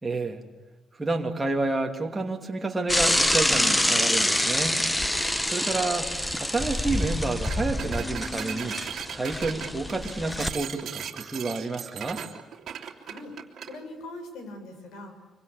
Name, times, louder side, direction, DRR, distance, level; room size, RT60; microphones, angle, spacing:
voice 1, 0.0-0.4 1.0-4.8 5.1-6.1 6.4-8.8 9.1-12.2, right 3 dB, 15° right, 2 dB, 2.7 m, -29 dB
Bicycle / Mechanisms, 2.9-10.5, left 1 dB, 5° left, 1.0 m, -26 dB
Bowed string instrument, 3.4-5.8 6.3-7.0 8.0-10.5, left 4 dB, 35° left, 4.5 m, -46 dB
sound 1, 6.9-7.1 7.4-13.8, right 9 dB, 50° right, 2.9 m, -38 dB
voice 2, 13.0-13.4 13.6-15.2, left 2 dB, 80° left, 6 dB, 7.1 m, -41 dB
25.5 x 24.5 x 8.6 m, 1.1 s
cardioid pair, 160°, 0 cm